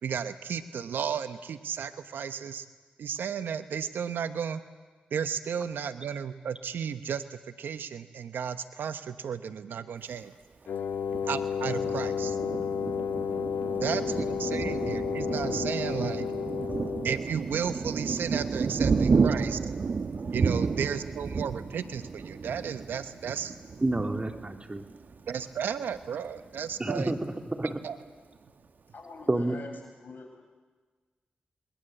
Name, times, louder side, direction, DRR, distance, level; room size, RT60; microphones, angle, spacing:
voice 1, 0.0-2.6 3.0-4.6 5.1-10.3 11.3-12.4 13.8-16.2 17.0-19.6 20.3-23.5 25.3-27.1 27.8-28.0, right 7 dB, 80° right, 11 dB, 1.0 m, -33 dB
Wind instrument woodwind instrument, 10.7-17.2, left 7 dB, 85° left, 1.4 m, -32 dB
Thunder, 11.1-25.4 25.9-26.1 26.4-27.0, right 5 dB, 60° right, 1.2 m, -31 dB
voice 2, 23.8-24.8 26.8-27.8 29.3-29.6, right 2 dB, 30° right, 5 dB, 3.2 m, -29 dB
voice 3, 28.9-30.4, left 3 dB, 65° left, 3 dB, 7.2 m, -45 dB
28.5 x 20.5 x 8.0 m, 1.4 s
supercardioid pair, 40°, 3 cm